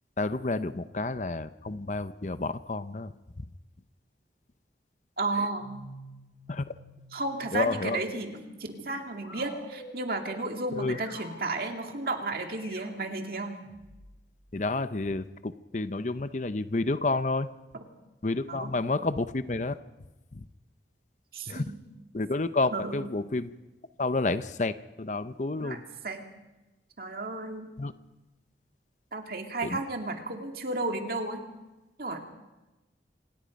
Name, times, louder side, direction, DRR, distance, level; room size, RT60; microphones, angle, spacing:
voice 1, 0.2-3.1 5.4-5.5 6.5-6.7 7.5-8.0 10.8-11.0 14.5-17.5 18.2-19.8 20.3-20.4 21.5-21.6 22.1-23.5 24.0-25.8 27.8-27.9 29.6-29.8, left 3 dB, 40° left, 12 dB, 0.7 m, -30 dB
voice 2, 5.2-5.7 7.1-13.5 18.5-18.7 21.3-21.8 22.7-23.0 25.6-26.2 27.0-27.7 29.1-31.4 32.0-32.2, right 2 dB, 55° right, 4 dB, 2.3 m, -33 dB
sound 1, 5.6-14.2, left 1 dB, 75° left, 5.9 m, -48 dB
26.5 x 18.5 x 5.3 m, 1.1 s
head